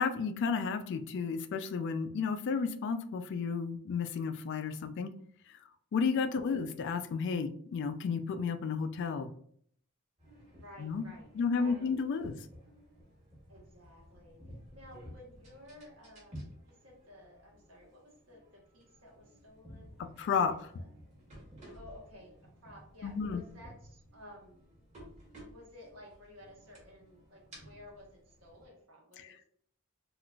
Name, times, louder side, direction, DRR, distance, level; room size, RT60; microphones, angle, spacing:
voice 1, 0.0-5.1 5.5-5.6 5.9-9.3 10.8-11.0 11.3-12.3 20.0-20.7 23.0-23.4 29.2-29.4, left 5 dB, 55° left, 9 dB, 0.3 m, -32 dB
sound 1, 10.2-28.6, equal, 35° right, 1.3 m, -54 dB
voice 2, 10.6-11.3 11.6-12.0 13.5-14.4 14.7-20.1 20.5-20.9 21.7-22.4 22.6-24.7 25.5-29.4, left 1 dB, 65° right, -2 dB, 1.1 m, -54 dB
3.7 x 2.4 x 2.3 m, 0.62 s
head